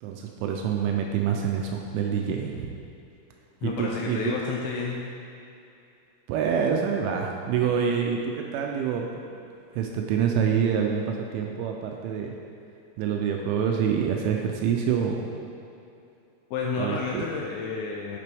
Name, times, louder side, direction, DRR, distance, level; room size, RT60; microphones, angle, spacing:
voice 1, 0.0-2.7 3.6-4.2 6.3-9.1 9.8-12.3 13.0-15.3 16.8-17.2, right 7 dB, 85° right, 2 dB, 2.8 m, -26 dB
voice 2, 3.6-5.0 16.5-18.2, left 5 dB, 85° left, -2 dB, 2.7 m, -30 dB
9.5 x 6.0 x 3.4 m, 2.6 s
omnidirectional pair, 5.8 m